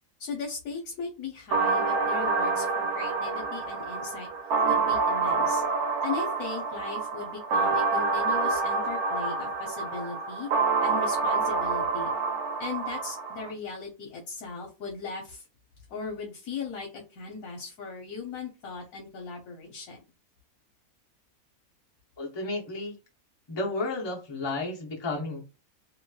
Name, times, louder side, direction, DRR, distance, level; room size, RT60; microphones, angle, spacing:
voice 1, 0.2-4.3 4.6-5.6 6.0-10.5 10.8-12.1 12.6-15.5 15.9-20.0, left 5 dB, 70° left, 1 dB, 1.1 m, -38 dB
sound 1, 1.5-13.5, right 4 dB, 85° right, 1.1 m, -27 dB
voice 2, 22.2-22.9 23.5-25.5, left 2 dB, 25° left, -2 dB, 0.6 m, -32 dB
2.9 x 2.8 x 2.2 m, 0.29 s
omnidirectional pair, 1.6 m